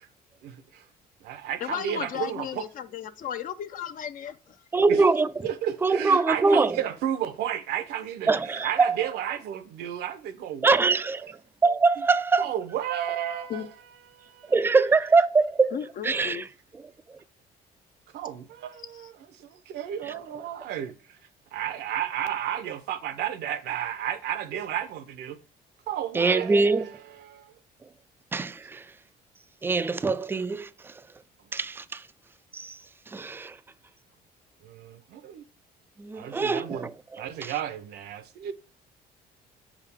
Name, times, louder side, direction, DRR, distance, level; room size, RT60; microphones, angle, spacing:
voice 1, 0.4-0.8 1.2-2.6 4.9-5.0 5.4-10.8 11.1-11.3 12.4-13.7 14.1-14.5 18.1-19.1 19.4-20.9 21.5-25.4 25.9-26.9 27.2-27.5 34.6-35.4 36.1-36.9 37.2-38.5, right 10 dB, 75° right, 0.7 m, -32 dB
voice 2, 1.6-4.6 13.5-13.7 15.7-16.4 18.9-19.1, left 9 dB, 55° left, 0.6 m, -35 dB
voice 3, 4.7-5.3 5.8-6.8 8.3-9.0 10.6-11.4 11.6-12.5 14.5-15.8 16.0-16.4 26.1-26.8 28.3-28.9 29.6-30.9 31.5-32.0 32.5-32.8 33.1-33.6 36.0-37.5, right 4 dB, 15° right, 0.4 m, -23 dB
6.5 x 4.9 x 3.6 m
cardioid pair, 110°, 17 cm